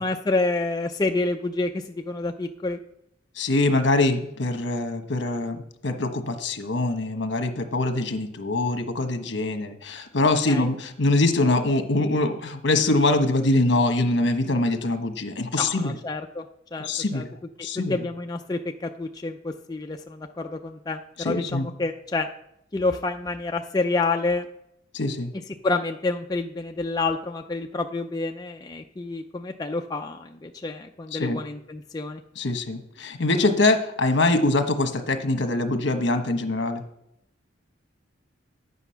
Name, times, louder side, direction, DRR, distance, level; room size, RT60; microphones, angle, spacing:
voice 1, 0.0-2.8 10.5-10.7 15.6-16.4 16.7-17.2 17.9-22.3 22.7-24.5 25.6-32.2, left 3 dB, 20° left, 3 dB, 0.4 m, -28 dB
voice 2, 3.4-5.6 5.8-16.0 16.8-17.3 17.6-18.0 21.2-21.7 24.9-25.3 31.1-31.4 32.4-36.8, left 2 dB, 65° left, 6 dB, 1.1 m, -23 dB
9.9 x 8.2 x 5.6 m, 0.78 s
head